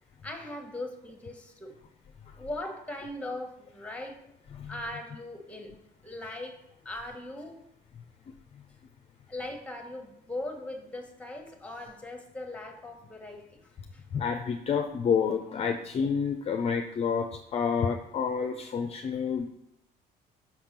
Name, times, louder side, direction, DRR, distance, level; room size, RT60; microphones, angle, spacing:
voice 1, 0.2-1.7 2.4-4.2 4.7-5.7 6.0-6.6 6.8-7.6 9.3-13.6 13.9-14.0, left 1 dB, 5° left, 4 dB, 1.2 m, -39 dB
voice 2, 14.1-19.5, left 6 dB, 35° left, 5 dB, 0.5 m, -29 dB
5.9 x 3.5 x 5.9 m, 0.81 s
cardioid pair, 110°, 17 cm